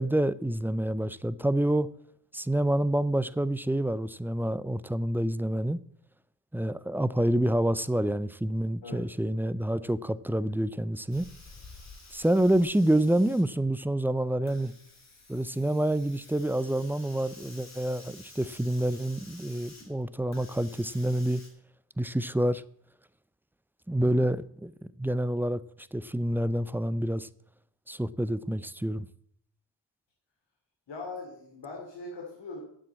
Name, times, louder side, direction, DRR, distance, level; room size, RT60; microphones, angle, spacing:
voice 1, 0.0-1.9 2.3-5.8 6.5-11.3 12.1-14.7 15.3-21.4 22.0-22.6 23.9-24.7 25.0-25.6 25.9-27.3 27.9-29.1, right 1 dB, 5° right, 0.4 m, -27 dB
Hiss, 11.1-21.5, left 2 dB, 35° left, 3.1 m, -51 dB
voice 2, 30.9-32.6, left 3 dB, 75° left, 2.9 m, -40 dB
8.8 x 7.6 x 8.5 m
cardioid pair, 90°, 44 cm